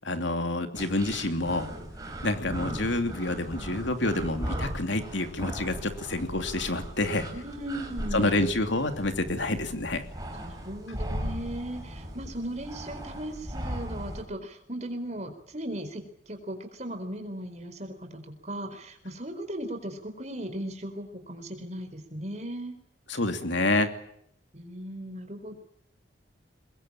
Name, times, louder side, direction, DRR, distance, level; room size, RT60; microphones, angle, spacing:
voice 1, 0.0-1.7 2.2-7.3 8.1-10.0 23.1-23.9, left 2 dB, 75° left, 7 dB, 2.8 m, -28 dB
sound 1, 0.7-14.2, equal, 20° right, 5.1 m, -38 dB
voice 2, 7.3-8.4 10.3-22.7 24.5-25.6, right 1 dB, 35° right, 7 dB, 4.4 m, -37 dB
23.5 x 21.0 x 8.9 m, 0.71 s
head